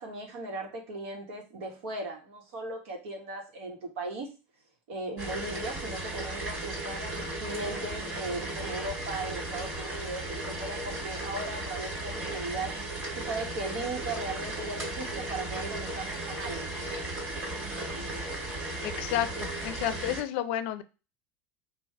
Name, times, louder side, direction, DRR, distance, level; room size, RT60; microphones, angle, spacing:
voice 1, 0.0-4.3 4.9-12.7 13.1-16.7, right 2 dB, 85° right, 2 dB, 1.4 m, -37 dB
sound 1, 5.2-20.2, right 2 dB, 30° right, 1.8 m, -35 dB
voice 2, 18.8-20.8, left 11 dB, 65° left, 12 dB, 0.5 m, -31 dB
4.9 x 2.5 x 3.2 m, 0.32 s
supercardioid pair, 155°, 7 cm